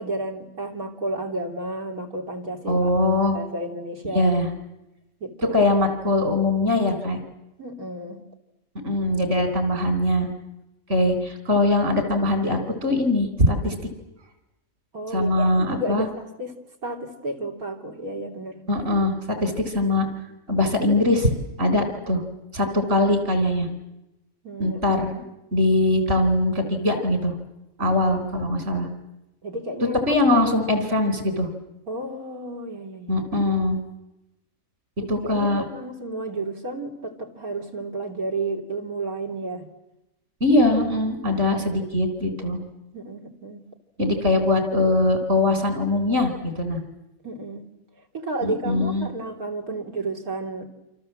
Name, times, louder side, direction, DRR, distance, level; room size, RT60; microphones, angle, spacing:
voice 1, 0.0-2.9 3.3-4.4 5.2-5.6 7.6-8.2 14.9-16.1 16.4-16.5 16.8-18.6 24.4-25.0 29.4-30.0 31.9-33.2 35.0-39.7 42.9-43.7 47.2-47.7 48.1-50.7, right 2 dB, 85° right, 2 dB, 3.4 m, -32 dB
voice 2, 2.7-3.4 4.1-4.5 5.5-7.2 8.8-10.3 10.9-13.8 15.1-16.1 18.7-19.1 19.4-20.1 20.5-21.3 21.6-22.2 22.5-23.7 24.6-25.2 25.5-27.3 27.8-28.9 30.1-31.5 33.1-33.8 35.1-35.6 40.4-42.6 44.0-46.8 48.4-49.1, left 2 dB, 55° right, 7 dB, 4.6 m, -21 dB
27.5 x 26.5 x 7.7 m, 0.94 s
omnidirectional pair, 1.5 m